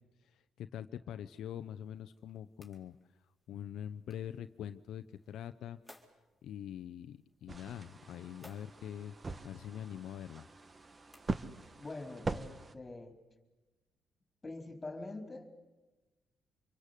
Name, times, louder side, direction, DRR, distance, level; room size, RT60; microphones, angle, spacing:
voice 1, 0.2-3.0 3.5-5.8 6.4-9.1 9.4-10.5, left 10 dB, 75° left, 10 dB, 0.8 m, -44 dB
sound 1, 1.5-11.8, left 1 dB, ahead, 4.3 m, -66 dB
sound 2, 7.5-12.7, right 3 dB, 30° right, 1.3 m, -42 dB
voice 2, 11.8-13.1 14.4-15.5, left 2 dB, 25° left, 6 dB, 4.4 m, -44 dB
26.5 x 23.0 x 8.4 m, 1.2 s
cardioid pair, 90°, 0 cm